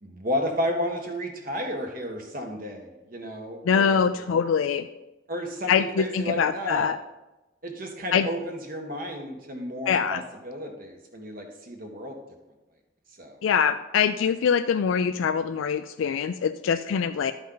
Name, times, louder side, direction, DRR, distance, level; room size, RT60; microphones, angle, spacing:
voice 1, 0.0-4.1 5.3-6.9 7.6-12.2 13.2-13.4, equal, 45° right, 2 dB, 1.4 m, -32 dB
voice 2, 3.6-4.9 5.7-7.0 8.1-8.3 9.9-10.2 13.4-17.3, left 7 dB, 80° left, 10 dB, 0.3 m, -24 dB
12.0 x 5.3 x 3.9 m, 1.0 s
head